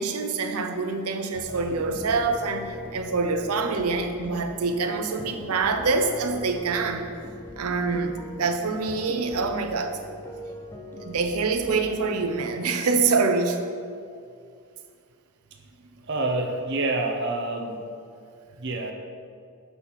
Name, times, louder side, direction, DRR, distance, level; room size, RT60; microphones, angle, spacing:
voice 1, 0.0-2.7 2.9-7.1 7.6-10.0 11.0-13.6, right 4 dB, 85° right, 6 dB, 0.6 m, -25 dB
sound 1, 1.3-12.3, left 1 dB, 10° left, 0.4 m, -41 dB
voice 2, 16.1-17.8 18.6-18.9, right 2 dB, 50° right, 4 dB, 0.7 m, -27 dB
6.1 x 4.1 x 5.6 m, 2.3 s
head